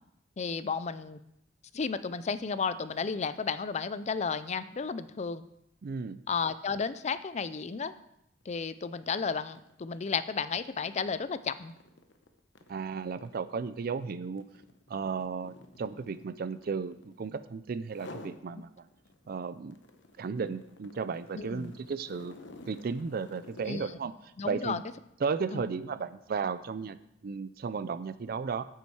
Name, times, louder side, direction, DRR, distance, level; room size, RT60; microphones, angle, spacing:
voice 1, 0.4-1.2 1.7-5.4 6.3-7.9 8.5-11.7 21.3-21.7 23.7-23.9 24.4-24.8 25.5-25.6, left 5 dB, 40° left, 14 dB, 0.4 m, -33 dB
voice 2, 5.8-6.2 12.7-14.5 14.9-18.7 19.3-19.8 20.2-22.4 22.7-24.1 24.4-24.8 25.2-27.0 27.2-28.6, right 5 dB, 55° right, 13 dB, 0.4 m, -34 dB
sound 1, 8.4-8.6 8.9-17.4 17.8-18.4 18.9-24.0, left 2 dB, 80° left, 0.9 m, -52 dB
8.5 x 8.5 x 4.7 m, 0.79 s
head